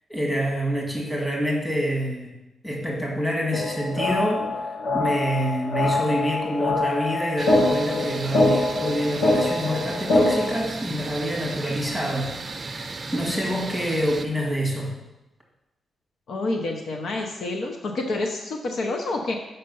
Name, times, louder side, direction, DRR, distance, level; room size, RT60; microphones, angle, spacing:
voice 1, 0.1-2.4 2.6-12.3 12.7-15.0, equal, 15° left, -1 dB, 1.9 m, -27 dB
sound 1, 3.5-10.5, left 2 dB, 90° left, 1.4 m, -24 dB
sound 2, 7.4-14.2, right 3 dB, 30° right, 0.5 m, -35 dB
voice 2, 11.7-12.0 16.3-19.3, left 2 dB, 65° left, 3 dB, 0.8 m, -28 dB
6.7 x 5.5 x 5.4 m, 0.98 s
wide cardioid pair, 130°, 0 cm